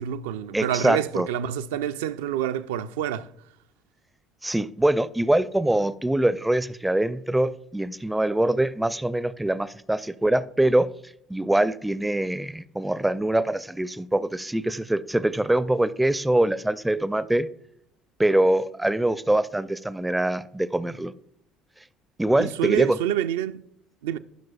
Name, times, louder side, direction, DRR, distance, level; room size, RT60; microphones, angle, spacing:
voice 1, 0.0-3.3 22.4-23.6 24.0-24.2, right 10 dB, 70° right, 0.4 m, -27 dB
voice 2, 0.5-1.3 4.4-17.5 18.2-21.1 22.2-23.0, right 1 dB, 10° right, 0.4 m, -24 dB
14.0 x 6.1 x 2.3 m
figure-of-eight pair, 55°, 0 cm